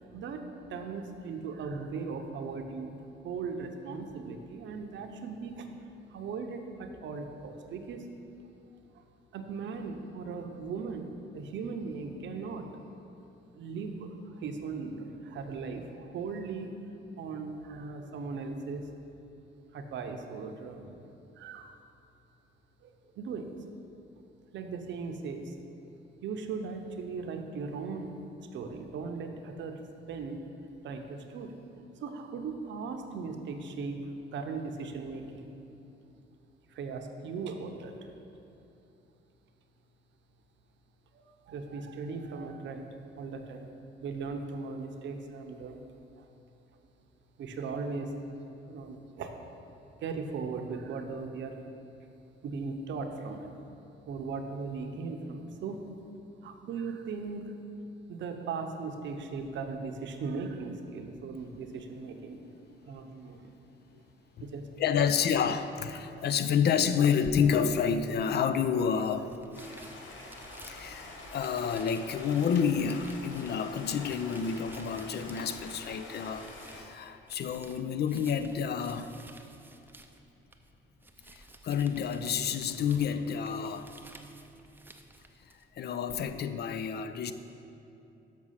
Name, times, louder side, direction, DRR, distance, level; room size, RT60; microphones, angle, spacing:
voice 1, 0.1-5.7 6.1-8.1 8.9-9.0 9.3-12.7 13.5-16.7 17.2-18.8 19.7-21.1 21.4-21.8 22.8-23.5 24.5-25.5 26.2-28.1 28.5-29.8 30.1-30.4 30.8-31.6 32.0-35.5 36.7-38.1 41.2-42.9 43.2-43.7 44.0-45.8 46.2-46.3 47.4-48.1 48.7-49.3 50.0-51.6 52.4-53.5 54.1-55.8 56.4-57.5 58.1-62.4 62.9-63.5 64.4-64.7, right 4 dB, 70° right, 5 dB, 0.7 m, -38 dB
voice 2, 64.8-69.3 70.7-79.1 81.3-83.9 85.8-87.3, left 7 dB, 55° left, 11 dB, 0.4 m, -29 dB
sound 1, 67.2-86.3, right 1 dB, 10° right, 0.5 m, -53 dB
Stream, 69.5-76.8, left 2 dB, 75° left, 1.0 m, -46 dB
6.2 x 6.0 x 5.6 m, 2.8 s
cardioid pair, 90°, 20 cm